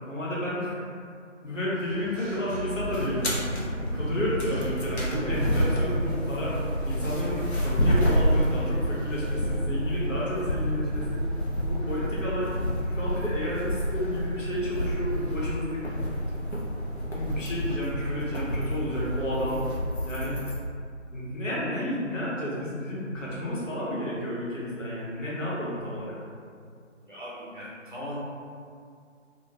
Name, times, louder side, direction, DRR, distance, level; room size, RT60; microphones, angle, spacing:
voice 1, 0.0-0.7 1.4-3.3 3.9-6.6 6.9-11.2 11.7-12.5 12.8-15.9 17.1-19.6 20.0-20.4 21.1-26.2, left 1 dB, 80° left, -7 dB, 1.0 m, -31 dB
Engine / Mechanisms, 1.7-7.7, right 2 dB, 75° right, 0.6 m, -39 dB
sound 1, 2.8-20.6, equal, 60° left, 0.6 m, -29 dB
voice 2, 27.0-28.2, equal, 40° right, -10 dB, 0.8 m, -39 dB
2.3 x 2.2 x 2.7 m, 2.3 s
figure-of-eight pair, 165°, 38 cm